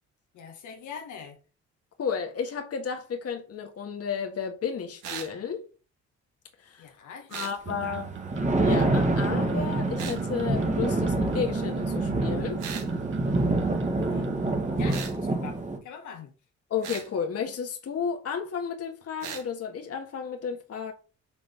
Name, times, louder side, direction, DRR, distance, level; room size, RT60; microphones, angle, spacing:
voice 1, 0.3-1.4 6.8-8.1 13.9-14.3 14.8-16.3, left 6 dB, 80° left, 1.7 m, -43 dB
voice 2, 2.0-5.6 6.6-6.9 7.3-8.1 8.6-12.6 16.7-20.9, left 6 dB, 50° left, 1.6 m, -32 dB
sound 1, 5.0-5.3 7.3-7.6 10.0-10.2 12.6-12.9 14.9-15.2 16.8-17.1 19.2-19.4, right 7 dB, 90° right, 1.8 m, -37 dB
sound 2, 7.7-14.9, right 6 dB, 40° right, 1.0 m, -37 dB
Thunder, 8.0-15.8, right 2 dB, 25° right, 1.6 m, -27 dB
6.0 x 3.9 x 5.9 m
cardioid pair, 90°, 30 cm